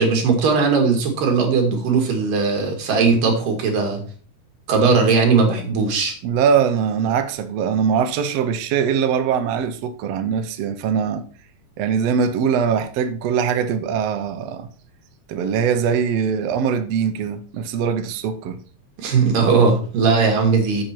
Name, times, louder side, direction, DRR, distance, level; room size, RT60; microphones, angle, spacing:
voice 1, 0.0-4.0 4.7-6.1 19.0-20.8, right 4 dB, 85° right, 3.8 m, -18 dB
voice 2, 6.2-11.2 11.8-14.7 15.3-18.6, right 7 dB, 70° right, 1.6 m, -22 dB
7.7 x 7.7 x 4.5 m
omnidirectional pair, 3.7 m